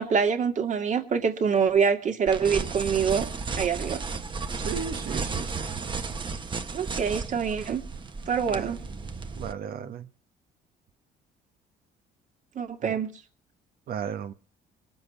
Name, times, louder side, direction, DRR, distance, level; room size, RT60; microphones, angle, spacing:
voice 1, 0.0-3.3 3.6-4.1 6.7-7.8 8.3-8.8 12.6-13.1, right 6 dB, 45° right, 2.3 m, -25 dB
sound 1, 2.3-9.5, right 4 dB, 30° right, 1.4 m, -34 dB
voice 2, 4.6-5.6 8.4-8.7 9.4-10.1 12.8-13.0 13.9-14.3, right 8 dB, 65° right, 1.5 m, -35 dB
22.5 x 7.8 x 5.9 m
cardioid pair, 110°, 17 cm